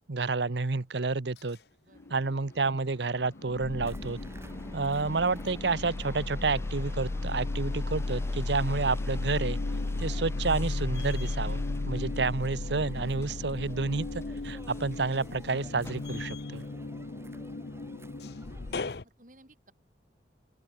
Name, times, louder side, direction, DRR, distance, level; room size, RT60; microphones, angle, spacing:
voice 1, 0.1-1.6 2.1-4.2 4.7-9.6 10.0-16.6, right 3 dB, 75° right, 0.9 m, -30 dB
sound 1, 1.9-16.5 17.1-17.6, left 2 dB, 15° left, 5.3 m, -52 dB
sound 2, 2.0-2.8 3.1-19.0, left 2 dB, 65° left, 0.8 m, -35 dB
sound 3, 3.8-18.9, equal, 15° right, 5.0 m, -49 dB
voice 2, 19.0-19.7, right 1 dB, 45° right, 6.8 m, -59 dB
open air
head